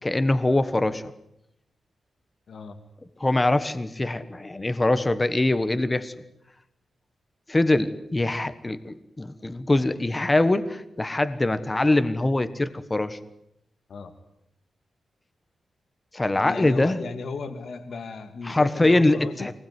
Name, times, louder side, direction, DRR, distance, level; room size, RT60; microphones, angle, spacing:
voice 1, 0.0-1.0 3.2-6.1 7.5-13.2 16.1-17.0 18.4-19.5, left 2 dB, 20° left, 13 dB, 1.3 m, -23 dB
voice 2, 16.4-19.5, left 4 dB, 65° left, 7 dB, 2.3 m, -36 dB
24.5 x 20.5 x 9.7 m, 0.82 s
wide cardioid pair, 140°, 0 cm